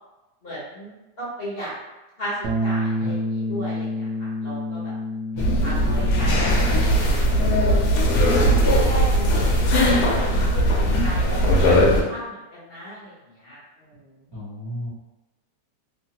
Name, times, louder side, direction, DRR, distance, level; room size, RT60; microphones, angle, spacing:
voice 1, 0.4-1.7 2.2-4.9 5.4-7.1 7.6-8.1 8.6-10.2 10.5-14.0, equal, 45° left, -8 dB, 0.9 m, -35 dB
Bass guitar, 2.4-8.7, left 1 dB, 90° right, 1.2 m, -29 dB
sound 1, 5.4-12.0, equal, 75° left, 1.1 m, -19 dB
voice 2, 14.3-14.9, left 1 dB, 35° right, -11 dB, 0.3 m, -34 dB
3.1 x 2.2 x 2.8 m, 1.0 s
omnidirectional pair, 1.8 m